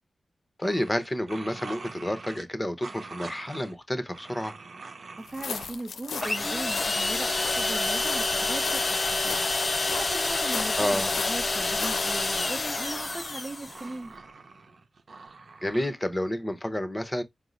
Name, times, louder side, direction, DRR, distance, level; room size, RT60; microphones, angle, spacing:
voice 1, 0.6-4.5 10.8-11.1 15.6-17.2, left 1 dB, 15° left, 0.9 m, -30 dB
sound 1, 0.6-2.5 2.8-3.8 4.1-5.8 6.1-7.5 11.0-12.5 12.8-15.9, right 4 dB, 60° right, 0.8 m, -45 dB
voice 2, 5.2-14.1, right 2 dB, 35° right, 0.7 m, -39 dB
sound 2, 5.3-12.2, left 6 dB, 90° left, 0.5 m, -38 dB
sound 3, 6.2-13.8, left 3 dB, 40° left, 0.7 m, -28 dB
4.6 x 2.0 x 3.9 m
wide cardioid pair, 85°, 0 cm